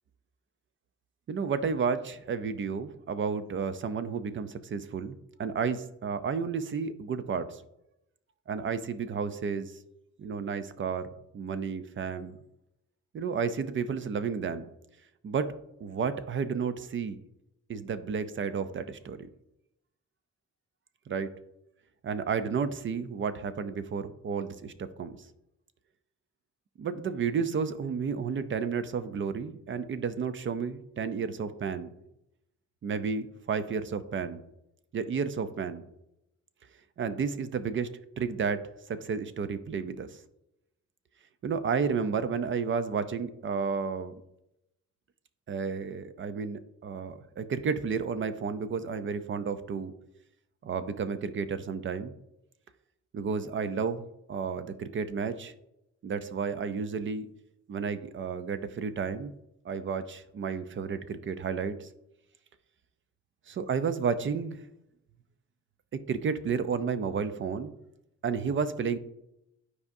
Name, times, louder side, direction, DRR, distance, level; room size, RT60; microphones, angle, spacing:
voice 1, 1.3-7.6 8.5-9.7 10.2-12.4 13.1-14.7 15.2-15.5 15.8-17.2 17.7-19.3 21.1-21.3 22.0-25.2 26.8-31.9 32.8-34.4 34.9-35.8 37.0-37.9 38.2-40.2 41.4-44.1 45.5-49.9 50.6-52.1 53.1-54.0 54.3-55.5 56.0-57.3 57.7-59.3 59.6-61.9 63.5-64.6 66.1-67.7 68.2-69.0, right 6 dB, 40° right, 12 dB, 0.5 m, -32 dB
9.6 x 4.8 x 2.6 m, 0.85 s
cardioid pair, 120°, 29 cm